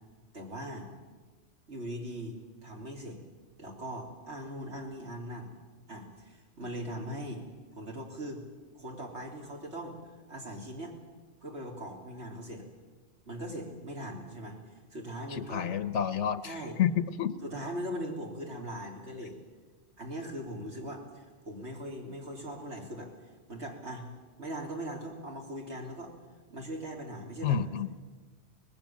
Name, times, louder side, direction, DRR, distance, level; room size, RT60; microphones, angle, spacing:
voice 1, 0.3-0.9 1.7-3.2 3.6-5.5 5.9-7.4 7.7-8.4 8.7-10.0 10.3-10.9 11.4-12.7 13.3-15.7 16.4-16.8 17.4-19.4 20.0-23.1 23.5-24.1 24.4-26.1 26.5-27.6, equal, 70° right, 0 dB, 3.9 m, -40 dB
voice 2, 15.4-16.5 16.8-17.3 27.4-27.9, left 8 dB, 80° left, 13 dB, 1.2 m, -29 dB
25.5 x 19.5 x 7.4 m, 1.3 s
omnidirectional pair, 1.2 m